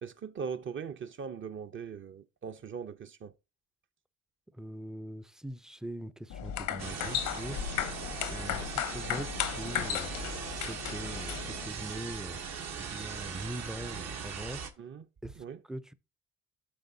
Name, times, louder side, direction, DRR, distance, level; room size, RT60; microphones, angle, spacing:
voice 1, 0.0-3.3 14.8-15.0 15.3-15.6, right 6 dB, 40° right, 0.6 m, -40 dB
voice 2, 4.5-8.0 8.3-10.1 10.6-12.4 12.7-14.6 15.2-15.9, right 1 dB, ahead, 0.4 m, -42 dB
sound 1, 6.3-11.7, left 9 dB, 90° left, 0.9 m, -35 dB
sound 2, 6.8-14.7, right 6 dB, 60° right, 1.0 m, -40 dB
12.0 x 4.0 x 2.7 m
cardioid pair, 90°, 30 cm